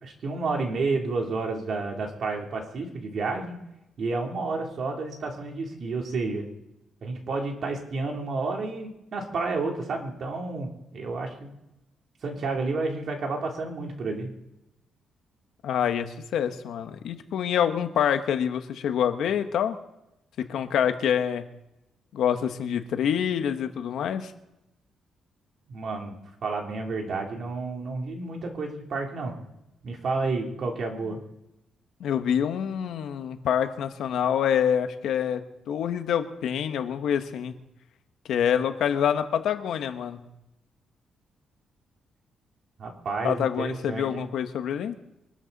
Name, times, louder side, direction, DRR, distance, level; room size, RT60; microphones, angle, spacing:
voice 1, 0.0-3.6 4.0-6.5 7.0-11.5 12.2-14.3 25.7-29.4 29.8-31.2 42.8-44.3, right 3 dB, 55° right, 1 dB, 3.2 m, -30 dB
voice 2, 15.6-19.8 20.4-21.5 22.1-24.3 32.0-35.4 35.7-37.6 38.3-40.3 43.2-45.0, left 9 dB, 80° left, 8 dB, 1.2 m, -26 dB
23.5 x 12.5 x 4.1 m, 0.89 s
cardioid pair, 120°, 0 cm